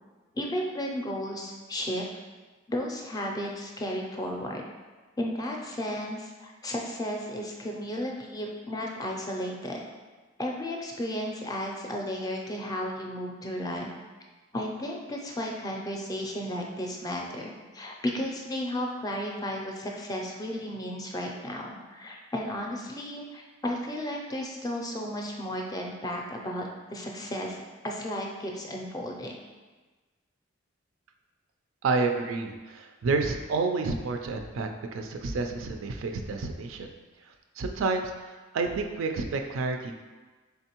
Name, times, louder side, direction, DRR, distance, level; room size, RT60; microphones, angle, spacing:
voice 1, 0.3-2.1 2.7-4.6 5.2-9.8 10.4-13.9 14.5-27.6 27.8-29.4, equal, 20° left, 0 dB, 0.4 m, -34 dB
voice 2, 31.8-36.9 37.6-38.1 38.5-40.0, right 3 dB, 70° right, 5 dB, 0.4 m, -29 dB
3.8 x 3.4 x 2.9 m, 1.3 s
head